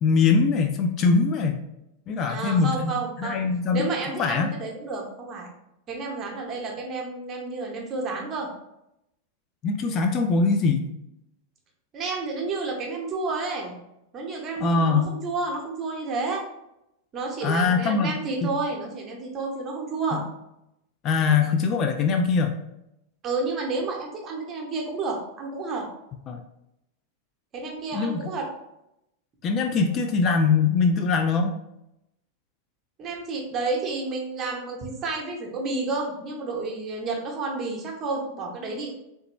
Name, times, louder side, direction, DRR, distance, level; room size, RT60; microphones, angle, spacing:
voice 1, 0.0-1.6 2.1-2.9 3.2-3.9 4.2-4.5 9.6-10.9 14.6-15.1 17.4-18.1 18.4-18.5 20.1-20.2 21.0-22.6 26.3-26.4 27.9-28.2 29.4-31.5, left 4 dB, 35° left, 5 dB, 0.3 m, -22 dB
voice 2, 2.3-3.4 3.7-5.5 5.9-8.5 11.9-13.8 14.1-16.4 17.1-20.2 21.4-21.5 23.2-25.9 27.5-28.5 33.0-38.9, right 3 dB, 30° right, 0 dB, 0.8 m, -30 dB
3.3 x 2.9 x 3.0 m, 0.85 s
figure-of-eight pair, 90°, 0 cm